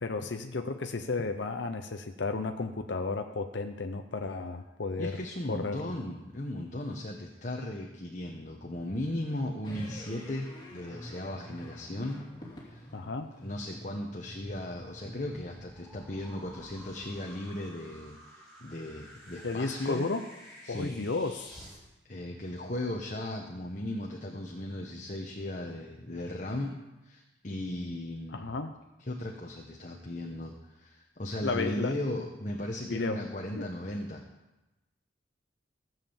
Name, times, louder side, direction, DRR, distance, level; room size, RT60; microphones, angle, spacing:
voice 1, 0.0-5.2 5.5-5.9 12.9-13.3 19.4-20.3 20.7-21.6 28.3-28.8 31.4-31.9 32.9-33.2 33.6-33.7, left 3 dB, 70° left, 6 dB, 0.7 m, -33 dB
voice 2, 5.0-12.3 12.6-12.9 13.4-20.1 20.6-21.0 22.0-28.6 29.0-34.2, left 1 dB, 40° left, 0 dB, 1.2 m, -37 dB
sound 1, 9.6-16.0, equal, 25° left, 2.9 m, -47 dB
sound 2, 14.4-21.8, equal, ahead, 5.6 m, -52 dB
15.0 x 7.7 x 7.2 m, 1.0 s
head